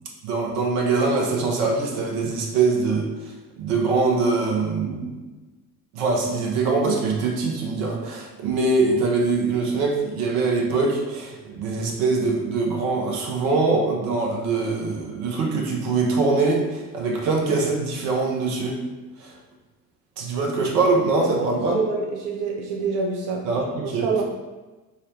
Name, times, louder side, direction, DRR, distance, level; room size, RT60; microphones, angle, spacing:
voice 1, 0.2-3.3 3.6-5.2 5.9-18.8 19.2-19.4 20.2-21.8 23.4-24.1, right 3 dB, 65° right, -1 dB, 0.9 m, -23 dB
voice 2, 21.4-23.4 24.0-24.2, right 4 dB, 45° right, 0 dB, 0.5 m, -26 dB
4.9 x 2.1 x 2.9 m, 1.2 s
figure-of-eight pair, 55°, 49 cm